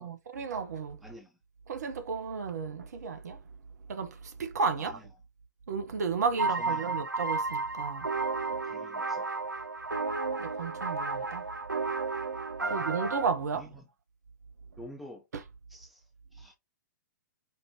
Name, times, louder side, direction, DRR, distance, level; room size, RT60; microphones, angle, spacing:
voice 1, 0.0-1.0 1.7-3.4 3.9-5.0 5.7-8.1 10.4-11.5 12.7-13.7, right 5 dB, 60° right, 0.9 m, -33 dB
voice 2, 1.0-1.4 4.8-5.1 6.6-7.0 8.5-9.3 12.6-12.9 13.5-13.8 14.8-15.2 15.7-16.5, left 1 dB, ahead, 0.8 m, -49 dB
sound 1, 6.4-13.3, right 3 dB, 85° right, 0.5 m, -32 dB
5.1 x 2.6 x 2.9 m
figure-of-eight pair, 115°, 10 cm